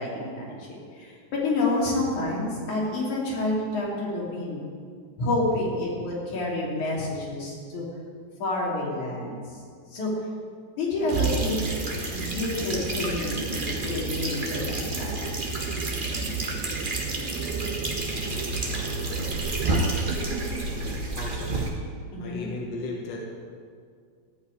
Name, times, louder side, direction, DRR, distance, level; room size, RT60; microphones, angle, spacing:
voice 1, 0.0-4.6 5.2-7.9 8.4-9.6 9.9-10.1 10.8-11.6 12.1-15.2 22.1-22.5, left 2 dB, 90° left, -4 dB, 4.3 m, -29 dB
sound 1, 11.0-21.0, right 7 dB, 85° right, 2.2 m, -38 dB
sound 2, 11.1-21.7, right 2 dB, 30° right, 1.0 m, -30 dB
voice 2, 21.1-21.7 22.2-23.2, left 2 dB, 65° left, -1 dB, 2.5 m, -35 dB
14.5 x 5.6 x 9.6 m, 2.1 s
omnidirectional pair, 3.3 m